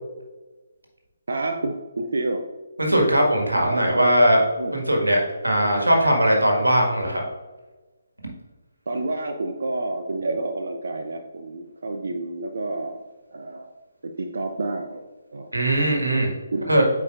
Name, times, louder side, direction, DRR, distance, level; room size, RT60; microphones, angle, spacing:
voice 1, 1.3-2.5 3.5-4.2 4.6-4.8 8.9-13.0 13.3-13.7 14.0-15.5 16.5-16.7, right 2 dB, 65° right, 4 dB, 0.5 m, -29 dB
voice 2, 2.8-4.4 4.7-7.2 15.5-16.3 16.7-16.8, equal, 85° right, 1 dB, 1.7 m, -19 dB
8.5 x 4.7 x 2.4 m, 1.2 s
figure-of-eight pair, 140°, 0 cm